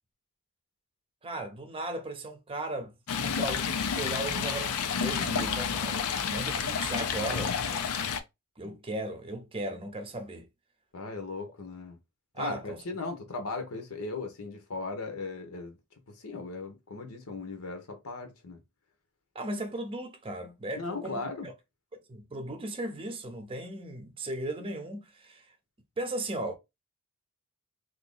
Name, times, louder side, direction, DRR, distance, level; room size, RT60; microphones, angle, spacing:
voice 1, 1.2-2.9 3.2-7.6 8.6-10.5 12.3-12.8 19.3-21.2 22.1-25.5 26.0-26.5, right 1 dB, 25° right, 0.7 m, -36 dB
Stream, 3.1-8.2, left 6 dB, 90° left, 0.5 m, -30 dB
voice 2, 10.9-12.0 12.4-15.8 16.1-18.6 20.8-21.5, left 3 dB, 70° left, 0.9 m, -37 dB
2.8 x 2.6 x 3.7 m
head